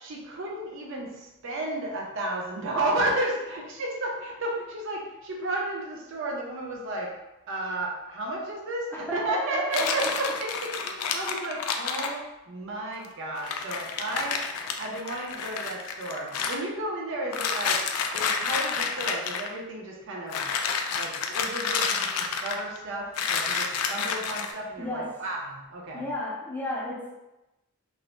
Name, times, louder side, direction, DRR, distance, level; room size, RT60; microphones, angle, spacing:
voice 1, 0.0-7.1 7.5-17.8 18.1-20.5 20.9-26.1, right 2 dB, 60° right, -1 dB, 0.5 m, -33 dB
voice 2, 8.9-10.1 24.8-25.2 25.9-27.2, left 1 dB, 10° left, -3 dB, 0.4 m, -33 dB
sound 1, 9.7-12.1 13.0-13.1 13.4-16.6 17.3-19.5 20.3-22.8 23.2-24.5, left 6 dB, 85° left, 0.3 m, -29 dB
2.6 x 2.0 x 3.0 m, 0.97 s
head